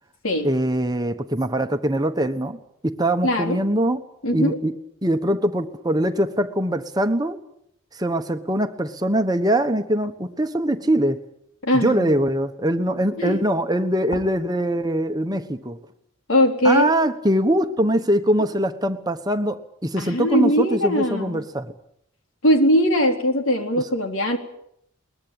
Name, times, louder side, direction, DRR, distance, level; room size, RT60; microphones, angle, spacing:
voice 1, 0.4-4.0 4.3-4.7 5.0-7.4 7.9-11.2 11.7-15.8 16.6-21.7, right 1 dB, 20° right, 7 dB, 1.2 m, -22 dB
voice 2, 3.2-3.6 4.2-4.6 11.6-12.1 13.2-13.4 16.3-16.9 20.0-21.5 22.4-24.4, equal, 75° left, 4 dB, 3.6 m, -20 dB
22.0 x 20.5 x 8.8 m, 0.73 s
head